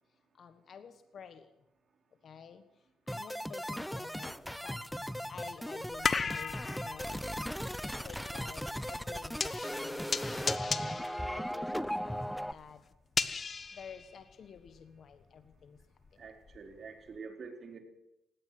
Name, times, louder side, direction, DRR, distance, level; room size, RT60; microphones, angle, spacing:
voice 1, 0.4-1.5 2.2-2.6 3.1-4.3 4.6-4.8 5.3-6.5 6.8-7.2 7.8-10.8 11.3-12.8 13.8-15.8, left 7 dB, 55° left, 9 dB, 1.3 m, -51 dB
sound 1, 3.1-12.5, equal, ahead, 0.7 m, -37 dB
sound 2, 4.7-14.8 15.1-16.8 17.1-17.2, left 5 dB, 40° left, 1.0 m, -37 dB
voice 2, 16.2-17.8, right 5 dB, 50° right, 3 dB, 4.5 m, -46 dB
19.0 x 17.5 x 7.9 m, 0.87 s
cardioid pair, 90°, 0 cm